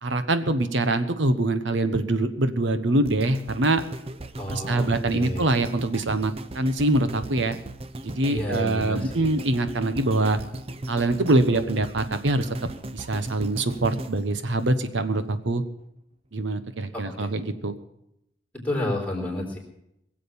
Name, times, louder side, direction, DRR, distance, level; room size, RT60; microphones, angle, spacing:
voice 1, 0.0-3.8 4.5-7.6 8.0-10.4 10.9-12.5 12.9-15.6 16.3-17.7, right 2 dB, 65° right, 10 dB, 1.1 m, -24 dB
sound 1, 3.1-15.3 15.8-15.9, right 1 dB, 30° right, 0.6 m, -38 dB
voice 2, 4.4-5.5 8.3-9.3 16.9-17.3 18.5-19.6, left 1 dB, 5° left, -2 dB, 3.7 m, -31 dB
21.5 x 7.6 x 7.0 m, 0.81 s
head